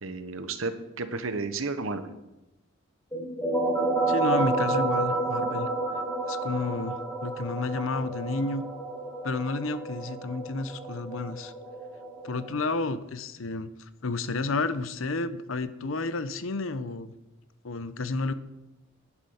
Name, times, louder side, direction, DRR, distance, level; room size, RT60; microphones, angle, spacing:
voice 1, 0.0-2.1, right 3 dB, 85° right, 10 dB, 1.1 m, -32 dB
sound 1, 3.1-12.5, right 2 dB, 15° left, 3.6 m, -30 dB
voice 2, 4.1-5.7 6.3-7.0 7.2-8.6 9.2-11.5 12.2-17.1 17.6-18.3, left 3 dB, 80° left, 13 dB, 0.8 m, -31 dB
10.5 x 9.9 x 5.7 m, 0.96 s
head